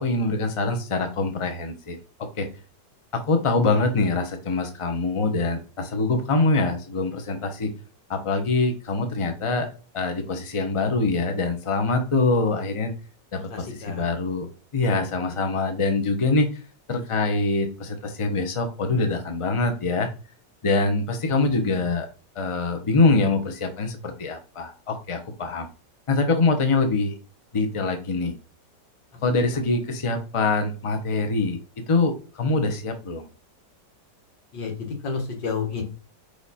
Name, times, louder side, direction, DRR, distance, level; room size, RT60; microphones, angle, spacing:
voice 1, 0.0-2.0 2.4-2.5 3.1-7.7 8.1-9.7 9.9-12.9 13.3-14.5 14.7-16.5 16.9-20.1 20.6-22.1 22.3-25.7 26.1-27.2 27.5-28.4 29.2-31.6 31.9-33.3, left 3 dB, 25° left, 6 dB, 0.7 m, -24 dB
voice 2, 13.5-14.0 21.3-21.8 34.5-35.8, left 5 dB, 80° left, 3 dB, 2.3 m, -31 dB
5.0 x 4.9 x 4.2 m, 0.35 s
omnidirectional pair, 1.9 m